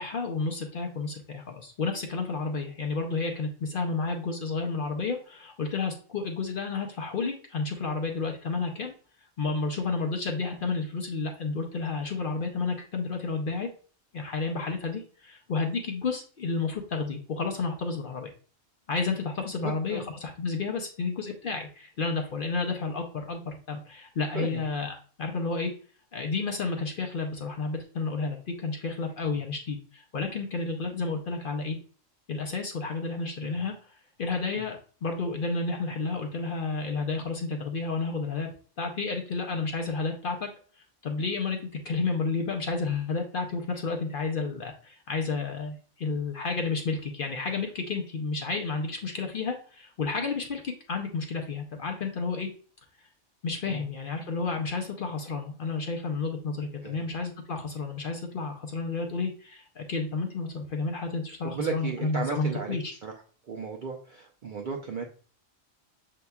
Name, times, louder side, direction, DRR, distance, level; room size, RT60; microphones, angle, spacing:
voice 1, 0.0-8.9 9.4-13.7 14.1-18.3 18.9-25.7 26.1-31.8 32.3-33.7 34.2-38.5 38.8-40.5 41.0-52.5 53.4-62.9, left 4 dB, 55° left, 3 dB, 0.6 m, -31 dB
voice 2, 19.6-20.1 24.3-24.6 33.4-33.6 53.7-53.8 56.8-57.0 61.4-63.1 63.5-65.0, right 5 dB, 60° right, 1 dB, 0.5 m, -34 dB
6.6 x 2.8 x 2.2 m, 0.41 s
omnidirectional pair, 1.3 m